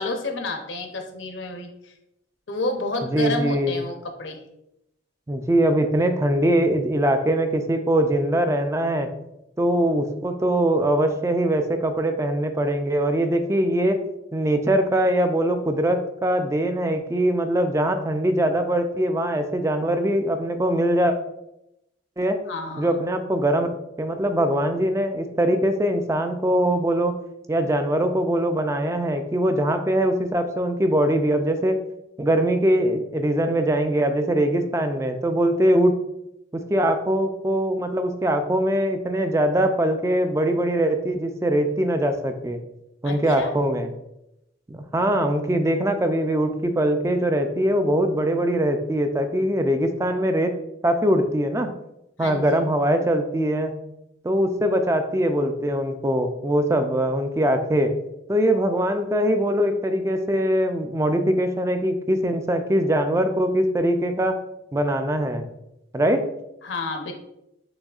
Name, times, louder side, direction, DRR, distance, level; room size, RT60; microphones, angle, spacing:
voice 1, 0.0-1.9 2.5-4.4 22.5-23.0 43.0-43.5 52.2-52.7 66.6-67.1, left 2 dB, 80° left, 4 dB, 0.7 m, -30 dB
voice 2, 3.0-3.7 5.3-9.1 9.6-14.0 14.3-21.2 22.2-22.4 22.8-23.7 24.0-27.1 27.5-31.8 32.2-35.9 36.5-42.6 43.0-43.9 44.7-50.5 50.8-51.7 52.2-53.7 54.2-57.9 58.3-64.4 64.7-65.5 65.9-66.2, right 1 dB, 15° right, 7 dB, 0.3 m, -22 dB
6.2 x 3.0 x 2.4 m, 0.85 s
head